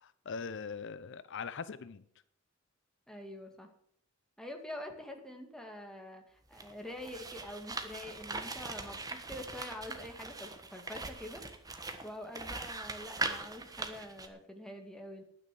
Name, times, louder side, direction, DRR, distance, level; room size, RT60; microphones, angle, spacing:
voice 1, 0.0-2.0, left 5 dB, 60° left, 15 dB, 0.6 m, -41 dB
voice 2, 3.1-3.7 4.4-11.4 11.7-15.2, left 1 dB, 5° left, 3 dB, 2.0 m, -46 dB
sound 1, 6.5-14.3, right 3 dB, 20° right, 1.4 m, -41 dB
11.0 x 9.5 x 7.6 m, 0.68 s
head